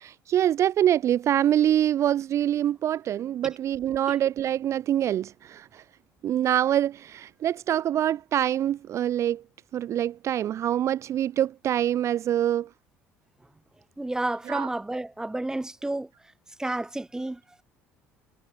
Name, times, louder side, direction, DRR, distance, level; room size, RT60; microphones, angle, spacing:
voice 1, 0.0-5.8 6.2-9.4 9.7-12.7 14.5-14.7, right 11 dB, 45° right, 0.4 m, -25 dB
voice 2, 14.0-16.1 16.6-17.4, right 2 dB, 10° right, 0.9 m, -30 dB
figure-of-eight pair, 60°, 7 cm